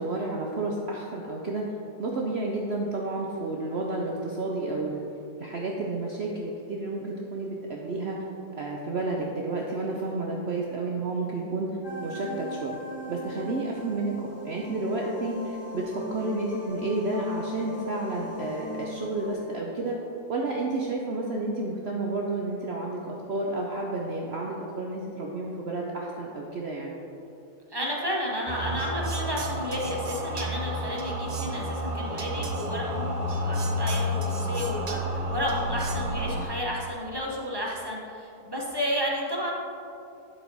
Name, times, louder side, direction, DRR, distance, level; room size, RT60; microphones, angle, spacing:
voice 1, 0.0-1.7 2.0-5.0 5.4-8.2 8.6-11.8 12.0-12.8 13.1-20.0 20.3-27.0, right 2 dB, 55° right, -1 dB, 0.8 m, -31 dB
sound 1, 11.8-19.6, left 1 dB, 85° left, 2.8 m, -38 dB
voice 2, 27.7-39.5, equal, 20° right, -3 dB, 0.8 m, -32 dB
sound 2, 28.5-36.4, equal, 85° right, 0.3 m, -30 dB
11.0 x 4.7 x 4.1 m, 2.7 s
omnidirectional pair, 1.7 m